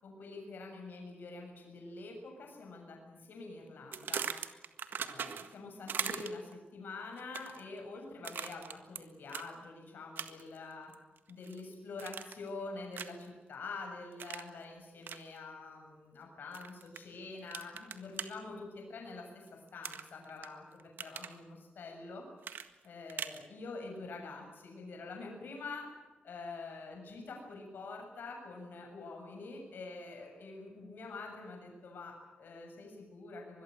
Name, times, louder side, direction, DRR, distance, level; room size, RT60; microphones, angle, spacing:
voice 1, 0.0-4.3 5.0-10.9 11.3-22.2 22.8-25.9 26.2-33.6, left 3 dB, 70° left, 2 dB, 7.1 m, -46 dB
sound 1, 3.9-5.6 5.9-6.5 7.2-7.6 8.2-9.0 9.3-9.5 10.2-10.6 10.9-11.6 12.0-12.5 12.9-13.3 14.2-14.5 15.0-15.2 16.5-17.0 17.5-18.3 19.8-20.5 20.8-21.4 22.4-23.4, right 7 dB, 75° right, 1.7 m, -40 dB
25.0 x 21.5 x 7.7 m, 1.2 s
wide cardioid pair, 165°, 3 cm